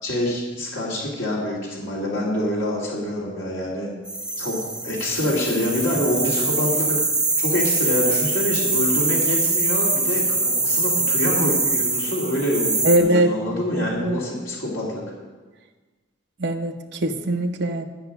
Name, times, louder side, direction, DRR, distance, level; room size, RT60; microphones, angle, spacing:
voice 1, 0.0-3.9 4.4-4.6 4.8-7.0 7.4-15.0, left 1 dB, 85° left, -5 dB, 3.0 m, -26 dB
sound 1, 4.0-13.0, right 3 dB, 5° right, 0.9 m, -23 dB
voice 2, 12.8-13.3 13.8-14.2 16.4-17.8, right 1 dB, 60° right, 3 dB, 1.0 m, -21 dB
12.5 x 5.8 x 9.0 m, 1.3 s
head